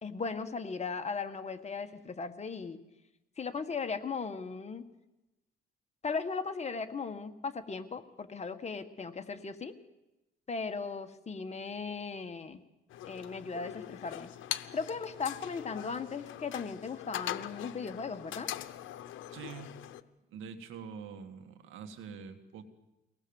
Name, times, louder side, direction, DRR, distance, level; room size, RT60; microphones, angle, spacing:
voice 1, 0.0-2.8 3.4-4.8 6.0-9.7 10.5-12.6 13.1-14.3 14.7-18.5, left 5 dB, 35° left, 7 dB, 1.6 m, -37 dB
sound 1, 12.9-20.0, left 12 dB, 80° left, 1.0 m, -42 dB
voice 2, 19.3-19.8 20.3-22.6, right 6 dB, 90° right, 8 dB, 2.1 m, -45 dB
24.0 x 18.5 x 7.2 m, 0.97 s
cardioid pair, 90°, 20 cm